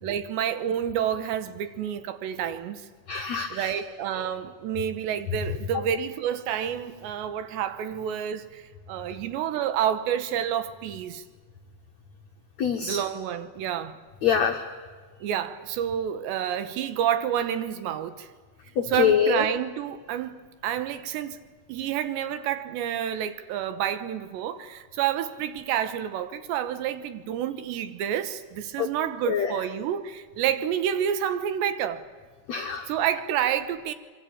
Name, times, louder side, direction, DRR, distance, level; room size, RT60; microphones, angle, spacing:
voice 1, 0.0-2.9 3.5-11.2 12.8-14.0 15.2-18.3 18.9-21.4 21.7-32.1 32.9-33.9, right 9 dB, 75° right, 3.3 m, -29 dB
voice 2, 3.1-3.7 12.6-13.0 14.2-14.6 18.7-19.4 28.8-28.9 29.2-29.6 32.5-32.9, left 7 dB, 75° left, 1.6 m, -24 dB
25.5 x 23.0 x 8.7 m
omnidirectional pair, 5.2 m